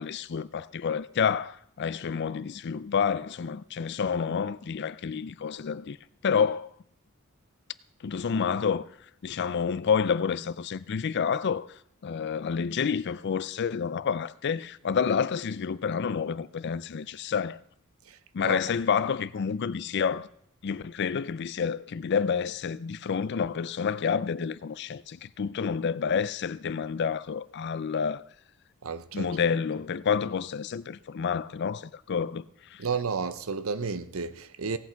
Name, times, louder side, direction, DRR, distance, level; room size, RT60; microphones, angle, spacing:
voice 1, 0.0-6.0 6.2-6.7 8.0-8.9 9.2-11.7 12.0-17.6 18.3-20.3 20.6-28.2 29.1-32.9, left 6 dB, 50° left, 0.4 m, -29 dB
voice 2, 28.8-29.3 32.8-34.8, right 5 dB, 70° right, 0.7 m, -32 dB
17.0 x 8.3 x 4.5 m
head